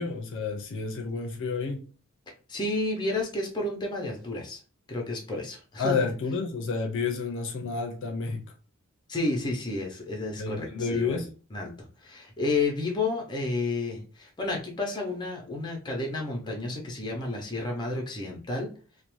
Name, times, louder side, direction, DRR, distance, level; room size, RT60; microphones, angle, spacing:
voice 1, 0.0-1.9 5.8-8.4 10.4-11.3, left 4 dB, 65° left, 0.5 m, -30 dB
voice 2, 2.5-4.6 4.9-6.0 9.1-11.2 11.5-18.7, left 2 dB, 20° left, 0.7 m, -31 dB
2.5 x 2.0 x 3.0 m
head